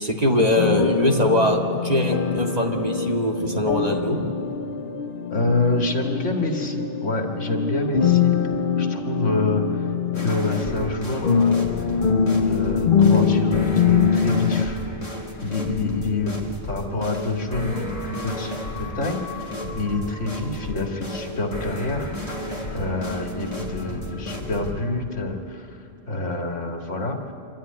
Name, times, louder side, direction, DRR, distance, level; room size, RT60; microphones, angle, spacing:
voice 1, 0.0-4.2, left 1 dB, 30° right, 1 dB, 1.8 m, -21 dB
sound 1, 0.5-14.7, left 6 dB, 50° left, 0.8 m, -23 dB
voice 2, 5.3-8.4 8.8-11.9 12.3-14.8 15.4-16.4 16.7-22.1 22.7-25.8 26.1-27.3, left 2 dB, 70° left, 2 dB, 2.2 m, -27 dB
sound 2, 10.1-24.7, equal, 35° left, 2.2 m, -33 dB
26.0 x 13.0 x 9.5 m, 2.8 s
omnidirectional pair, 1.3 m